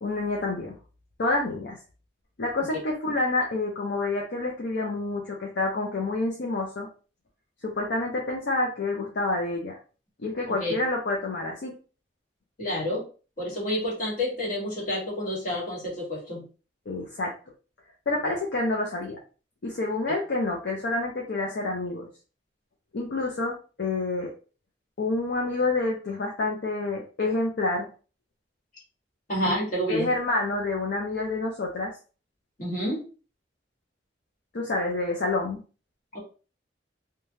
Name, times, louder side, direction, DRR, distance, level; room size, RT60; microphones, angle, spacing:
voice 1, 0.0-0.7 1.2-1.8 2.4-6.9 7.6-9.8 10.2-11.7 16.9-17.3 18.1-19.2 19.6-22.1 22.9-24.3 25.0-27.9 29.5-29.6 29.9-31.9 34.5-35.6, left 2 dB, 65° left, -1 dB, 0.6 m, -28 dB
voice 2, 10.5-10.8 12.6-13.0 13.4-16.4 20.1-20.2 29.3-30.1 32.6-33.0 36.1-36.2, equal, 50° left, -4 dB, 1.4 m, -29 dB
3.2 x 2.2 x 2.7 m, 0.36 s
head